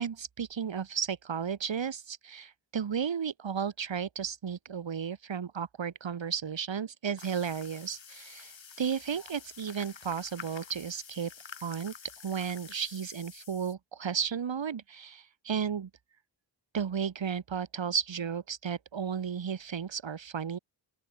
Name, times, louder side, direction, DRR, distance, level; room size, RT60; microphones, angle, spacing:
voice 1, 0.0-11.3 11.6-11.9 12.2-15.9 16.7-20.6, right 7 dB, 80° right, 2.4 m, -34 dB
sound 1, 7.2-13.7, left 6 dB, 85° left, 6.7 m, -49 dB
open air
wide cardioid pair, 95°, 44 cm